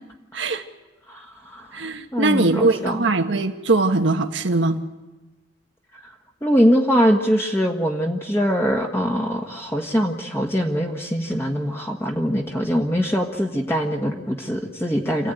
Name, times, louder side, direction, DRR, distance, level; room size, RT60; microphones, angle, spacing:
voice 1, 1.1-3.0 6.0-6.1 6.4-15.3, equal, 15° left, 0 dB, 1.5 m, -22 dB
voice 2, 1.7-4.8, right 2 dB, 80° right, 4 dB, 1.4 m, -21 dB
27.5 x 15.5 x 9.2 m, 1.2 s
head